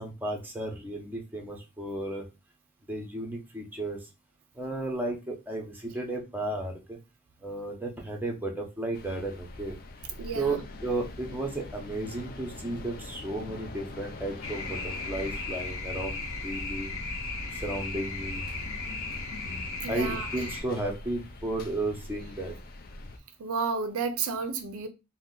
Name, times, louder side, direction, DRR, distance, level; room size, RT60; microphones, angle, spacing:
voice 1, 0.0-2.2 2.9-4.0 4.5-7.0 7.4-9.7 10.3-16.9 17.5-18.4 19.9-22.5, right 2 dB, 10° right, 0.6 m, -34 dB
sound 1, 8.9-23.2, left 2 dB, 45° left, 0.4 m, -43 dB
voice 2, 10.2-10.6 19.8-20.3 23.4-24.9, right 5 dB, 80° right, 0.4 m, -31 dB
sound 2, 14.4-20.6, left 3 dB, 65° left, 0.9 m, -36 dB
2.7 x 2.1 x 3.7 m
head